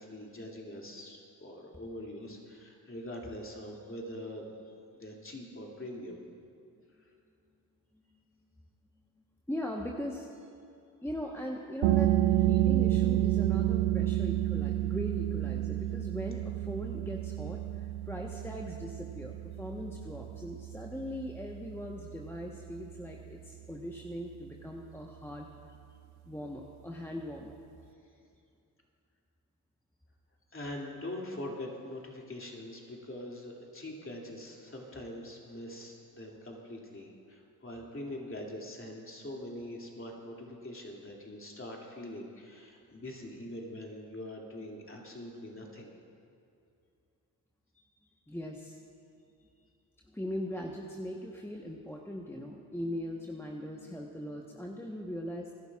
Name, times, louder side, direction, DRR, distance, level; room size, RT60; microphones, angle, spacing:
voice 1, 0.0-6.2 7.0-7.1 30.5-45.9 47.8-47.9, left 1 dB, 25° left, -1 dB, 2.6 m, -43 dB
voice 2, 9.5-10.3 11.0-25.5 26.3-27.6 48.3-48.8 50.1-55.5, equal, 5° left, 0 dB, 1.1 m, -40 dB
sound 1, 11.8-23.2, right 14 dB, 75° right, 0.7 m, -30 dB
23.5 x 11.0 x 2.4 m, 2.5 s
hypercardioid pair, 40°, 49 cm